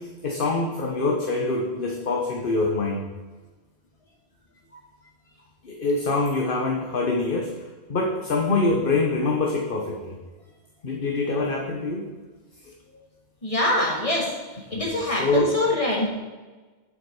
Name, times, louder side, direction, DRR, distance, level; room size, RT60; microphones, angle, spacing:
voice 1, 0.2-3.0 5.6-7.5 7.9-10.2 10.8-12.1 14.7-15.5, left 3 dB, 50° left, 0 dB, 1.2 m, -25 dB
voice 2, 13.4-14.3 14.7-16.1, left 1 dB, 30° left, -3 dB, 2.4 m, -24 dB
9.1 x 8.0 x 4.8 m, 1.3 s
omnidirectional pair, 1.2 m